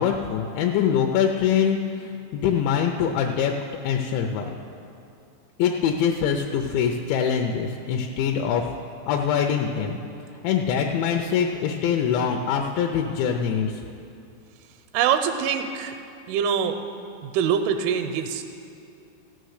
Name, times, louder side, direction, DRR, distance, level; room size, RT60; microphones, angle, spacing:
voice 1, 0.0-3.5 3.8-4.5 5.6-8.7 9.1-10.0 10.4-13.8, left 7 dB, 80° left, 3 dB, 2.7 m, -24 dB
voice 2, 14.9-16.0 16.3-16.8 17.2-18.4, right 8 dB, 85° right, 6 dB, 3.0 m, -24 dB
15.5 x 6.6 x 6.4 m, 2.7 s
omnidirectional pair, 5.4 m